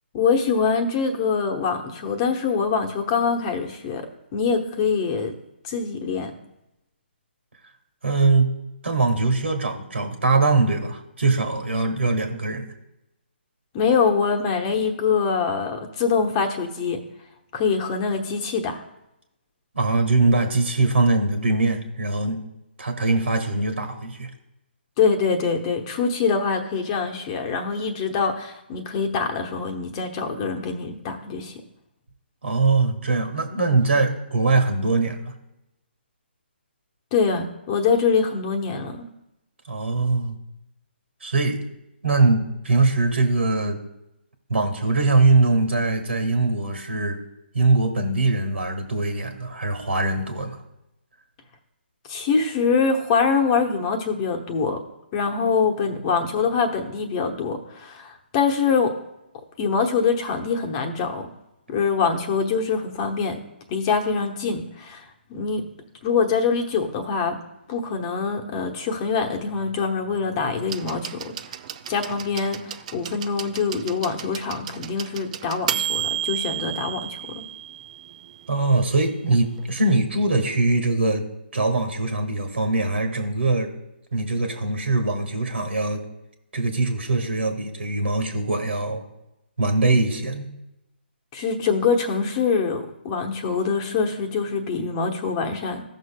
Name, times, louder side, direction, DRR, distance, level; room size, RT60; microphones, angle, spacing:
voice 1, 0.1-4.1 4.3-5.3 5.6-6.3 13.7-17.0 17.5-18.8 25.0-31.5 37.1-39.0 52.1-54.8 55.1-58.9 59.6-61.3 61.7-63.4 63.7-65.6 66.0-67.4 67.7-71.3 71.9-77.4 91.3-95.8, left 5 dB, 30° left, 4 dB, 1.0 m, -24 dB
voice 2, 8.0-8.5 8.8-12.7 19.7-22.4 22.8-24.3 32.4-35.3 39.7-40.4 41.2-41.6 42.0-43.8 44.5-47.2 47.5-50.6 78.5-81.2 81.5-83.7 84.1-86.0 86.5-89.0 89.6-90.5, right 3 dB, 85° right, 6 dB, 1.9 m, -22 dB
sound 1, 70.7-78.5 79.6-79.7, right 11 dB, 35° right, 0.4 m, -32 dB
15.0 x 6.5 x 2.2 m, 0.89 s
hypercardioid pair, 150°, 6 cm